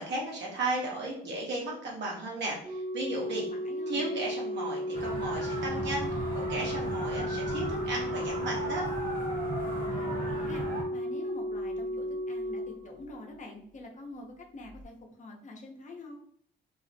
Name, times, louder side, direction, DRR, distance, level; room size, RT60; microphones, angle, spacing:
voice 1, 0.0-3.5 3.9-8.9, right 2 dB, 65° right, -3 dB, 0.9 m, -35 dB
Organ, 2.6-13.5 14.6-14.8, equal, 25° right, 0.4 m, -34 dB
voice 2, 3.5-4.1 9.8-16.2, left 2 dB, 40° left, 1 dB, 0.7 m, -46 dB
sound 1, 4.9-10.8, right 2 dB, 40° right, 1.1 m, -36 dB
2.4 x 2.0 x 2.7 m, 0.64 s
cardioid pair, 90°, 20 cm